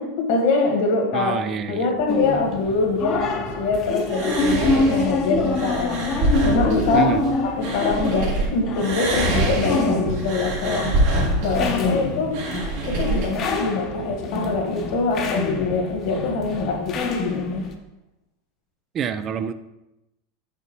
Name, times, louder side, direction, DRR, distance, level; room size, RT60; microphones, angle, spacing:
voice 1, 0.0-1.4 1.7-7.1 7.6-10.9 11.4-12.4 12.8-17.7, left 3 dB, 70° left, 2 dB, 1.6 m, -24 dB
voice 2, 1.1-1.9 6.9-7.2 18.9-19.5, right 8 dB, 35° right, 12 dB, 0.4 m, -26 dB
sound 1, 2.0-16.7, right 3 dB, 50° right, 1.7 m, -39 dB
sound 2, 2.1-17.7, left 3 dB, 40° left, 0.8 m, -27 dB
sound 3, 4.1-8.5 8.8-13.3, right 2 dB, 70° right, 2.2 m, -25 dB
6.7 x 5.7 x 3.1 m, 0.90 s
supercardioid pair, 120°, 0 cm